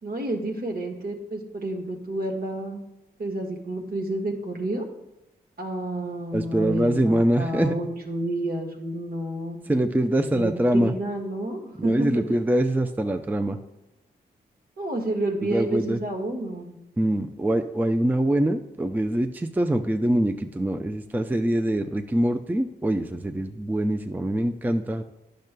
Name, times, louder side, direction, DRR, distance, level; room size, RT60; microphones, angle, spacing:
voice 1, 0.0-2.8 3.2-4.8 5.6-9.6 10.3-12.2 14.8-16.7, right 1 dB, 60° right, 2 dB, 1.5 m, -30 dB
voice 2, 6.3-7.8 9.7-10.9 11.8-13.6 15.4-16.0 17.0-25.0, right 1 dB, 10° right, 7 dB, 0.4 m, -24 dB
10.5 x 6.5 x 2.2 m, 0.92 s
cardioid pair, 60°, 17 cm